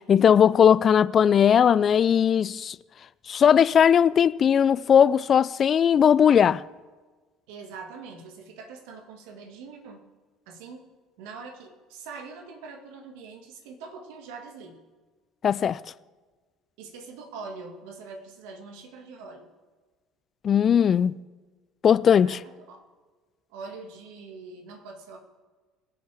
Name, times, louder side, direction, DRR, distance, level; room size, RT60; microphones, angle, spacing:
voice 1, 0.1-2.8 3.3-6.6 15.4-15.8 20.4-21.2 21.8-22.4, left 8 dB, 45° left, 0.3 m, -19 dB
voice 2, 7.5-10.0 10.5-10.8 11.2-14.8 16.8-19.5 22.2-22.4 22.7-22.9 23.5-25.2, right 4 dB, 70° right, 1.8 m, -43 dB
21.5 x 7.6 x 3.4 m
hypercardioid pair, 60°, 0 cm